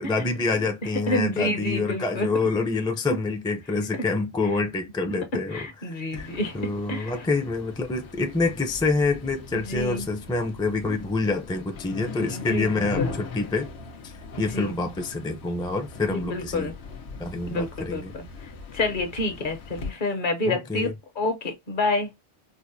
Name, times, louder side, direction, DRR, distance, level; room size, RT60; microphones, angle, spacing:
voice 1, 0.0-13.7 14.0-14.1 14.4-16.7 17.2-18.1 20.4-20.9, left 3 dB, 5° left, 0.4 m, -27 dB
voice 2, 1.1-2.3 3.1-3.2 5.3-7.2 9.5-10.1 10.9-11.0 12.1-13.2 14.5-14.8 16.1-16.7 17.5-18.2 18.7-20.9 21.2-22.1, left 2 dB, 55° left, 1.0 m, -29 dB
sound 1, 6.1-19.9, left 4 dB, 90° left, 1.0 m, -39 dB
4.6 x 2.1 x 2.6 m
omnidirectional pair, 1.1 m